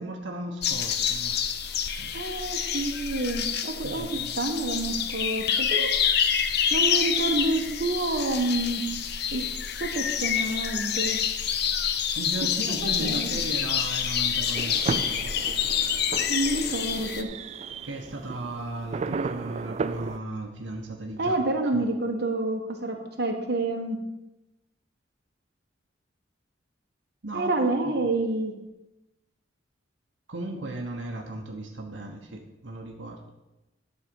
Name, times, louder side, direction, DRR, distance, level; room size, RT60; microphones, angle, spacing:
voice 1, 0.0-1.4 2.0-2.1 3.8-4.4 12.1-15.3 15.6-15.7 17.8-21.3 21.7-21.9 27.2-27.5 27.8-27.9 30.3-33.3, right 1 dB, 85° right, 1 dB, 1.2 m, -36 dB
sound 1, 0.6-17.2, left 8 dB, 60° left, 0.7 m, -27 dB
voice 2, 2.1-5.9 6.7-8.8 9.3-9.4 9.8-11.2 12.8-13.4 16.3-17.3 21.2-24.0 27.3-28.5, right 2 dB, 60° right, 2 dB, 1.4 m, -28 dB
sound 2, 14.6-20.2, right 4 dB, 35° right, 0.3 m, -34 dB
11.5 x 4.4 x 7.0 m, 0.99 s
head